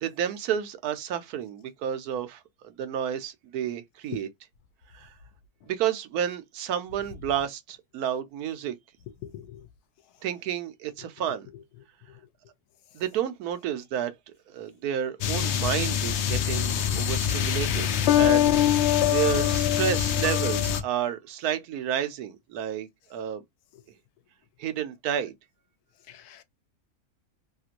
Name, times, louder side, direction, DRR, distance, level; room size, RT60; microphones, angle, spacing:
voice 1, 0.0-4.3 4.9-5.1 5.7-8.7 10.2-11.5 12.9-14.1 14.5-18.8 19.1-23.4 24.6-25.3, right 10 dB, 85° right, 1.1 m, -31 dB
voice 2, 9.2-9.6 26.1-26.4, left 11 dB, 90° left, 1.1 m, -43 dB
sound 1, 15.2-20.8, left 10 dB, 65° left, 0.7 m, -23 dB
3.0 x 2.5 x 2.8 m
omnidirectional pair, 1.6 m